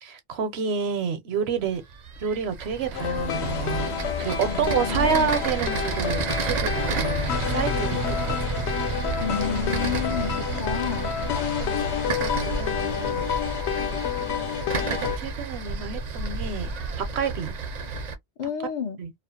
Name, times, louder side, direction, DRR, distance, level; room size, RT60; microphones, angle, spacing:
voice 1, 0.0-1.8 2.2-8.4 11.4-13.3 14.1-16.7 17.2-17.6 19.0-19.1, right 6 dB, 75° right, 0.9 m, -29 dB
sound 1, 1.6-18.2, right 4 dB, 55° right, 0.5 m, -31 dB
sound 2, 2.9-15.2, left 8 dB, 85° left, 0.9 m, -29 dB
voice 2, 4.5-5.4 9.2-11.1 18.4-19.0, left 7 dB, 55° left, 0.5 m, -31 dB
2.4 x 2.1 x 2.6 m
omnidirectional pair, 1.1 m